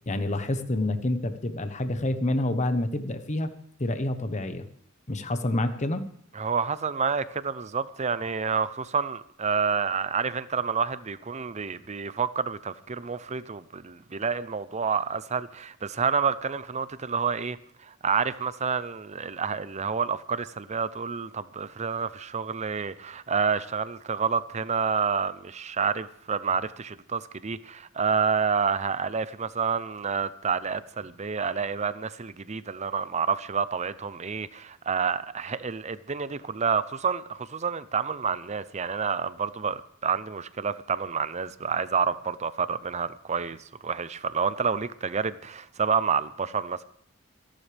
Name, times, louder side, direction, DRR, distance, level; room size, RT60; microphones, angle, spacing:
voice 1, 0.1-3.5 3.8-4.7 5.1-6.1, left 1 dB, 35° left, 1.1 m, -28 dB
voice 2, 6.3-17.6 17.8-43.6 43.8-46.8, right 6 dB, 35° right, 0.6 m, -29 dB
26.5 x 11.5 x 3.4 m
head